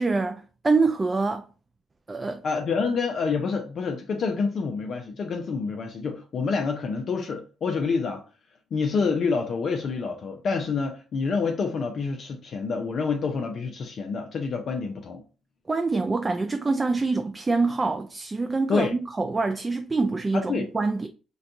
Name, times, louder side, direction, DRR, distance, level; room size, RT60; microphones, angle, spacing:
voice 1, 0.0-1.4 2.1-2.4 15.7-21.1, right 3 dB, 25° right, 0.3 m, -25 dB
voice 2, 2.4-8.2 8.7-15.2 18.7-18.9 20.3-20.7, left 5 dB, 55° left, 0.5 m, -27 dB
4.0 x 2.3 x 2.5 m
cardioid pair, 90°, 0 cm